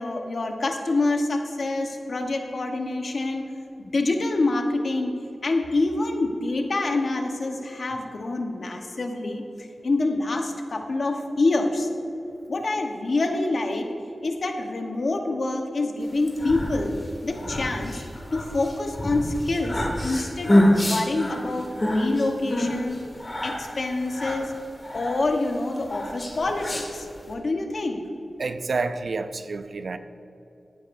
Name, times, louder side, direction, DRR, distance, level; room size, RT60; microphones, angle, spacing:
voice 1, 0.0-3.5 3.8-9.4 9.8-11.9 12.5-13.9 14.2-16.9 17.2-18.0 18.3-23.0 23.4-24.5 24.9-28.0, left 2 dB, 65° left, 1.1 m, -26 dB
sound 1, 16.1-27.3, left 1 dB, 30° left, 2.2 m, -26 dB
voice 2, 28.4-30.0, right 4 dB, 70° right, 0.5 m, -29 dB
15.5 x 10.0 x 2.6 m
wide cardioid pair, 70°, 0 cm